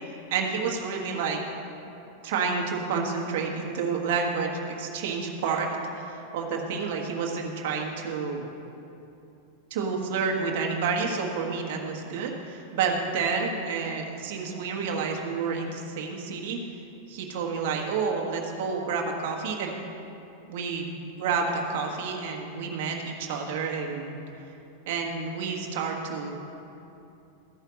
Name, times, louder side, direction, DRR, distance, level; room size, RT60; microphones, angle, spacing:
voice 1, 0.0-1.4 2.2-5.7 5.9-8.5 9.7-16.6 17.1-19.7 20.5-24.2 24.9-26.3, right 5 dB, 50° right, 0 dB, 1.4 m, -29 dB
14.0 x 5.6 x 6.3 m, 2.9 s
figure-of-eight pair, 90°, 0 cm